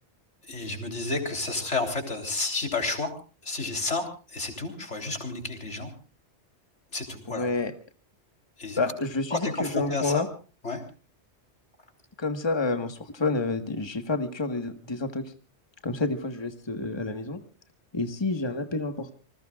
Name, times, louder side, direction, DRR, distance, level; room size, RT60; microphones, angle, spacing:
voice 1, 0.4-3.1 3.4-5.9 6.9-7.5 8.6-8.8 9.3-10.2 10.6-10.8, left 3 dB, 90° left, 4 dB, 3.9 m, -31 dB
voice 2, 7.3-7.7 8.8-10.3 12.2-15.3 15.8-17.4 17.9-19.1, left 3 dB, 25° left, 7 dB, 1.5 m, -29 dB
27.5 x 20.5 x 2.4 m, 0.36 s
omnidirectional pair, 1.2 m